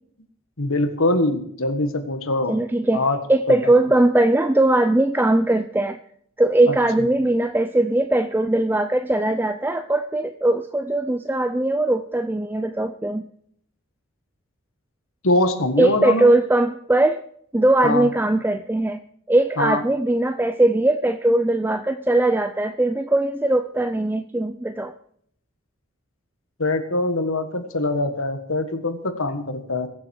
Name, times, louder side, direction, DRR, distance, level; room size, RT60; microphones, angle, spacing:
voice 1, 0.6-2.5 2.9-3.2 6.7-6.8 15.2-16.3 17.8-18.1 19.6-19.8 26.6-29.9, left 2 dB, 70° left, 8 dB, 1.7 m, -23 dB
voice 2, 2.5-3.0 3.3-6.0 6.4-13.2 15.8-17.2 17.5-19.0 19.3-24.9, right 1 dB, 10° right, 10 dB, 0.4 m, -20 dB
21.5 x 7.4 x 4.7 m, 0.66 s
head